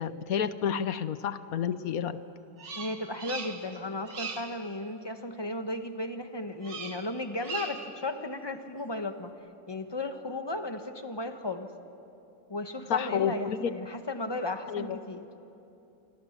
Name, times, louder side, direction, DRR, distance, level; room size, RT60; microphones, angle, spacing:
voice 1, 0.0-2.2 12.9-13.7 14.7-15.0, left 8 dB, 60° left, 13 dB, 1.1 m, -30 dB
Bird vocalization bird call bird song, 2.6-3.8 4.0-4.6 6.6-7.1 7.4-7.9, right 4 dB, 70° right, 2.5 m, -39 dB
voice 2, 2.8-9.3 9.7-11.7 12.5-15.3, left 2 dB, 15° left, 7 dB, 1.1 m, -35 dB
28.0 x 25.0 x 7.4 m, 2.9 s
omnidirectional pair, 2.0 m